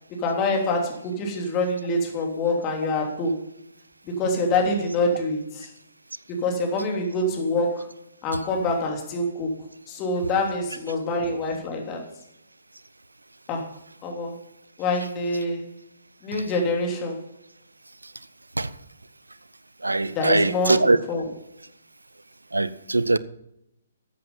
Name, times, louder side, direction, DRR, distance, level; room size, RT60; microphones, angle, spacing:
voice 1, 0.1-3.4 4.0-5.7 6.3-7.9 8.2-9.6 9.9-12.0 13.5-13.7 14.0-14.4 14.8-15.7 16.2-17.2 20.1-21.3, left 2 dB, 25° left, 3.1 m, -26 dB
voice 2, 19.8-21.0 22.5-23.2, right 2 dB, 85° right, 0.6 m, -21 dB
13.5 x 8.4 x 5.5 m
figure-of-eight pair, 130°, 0 cm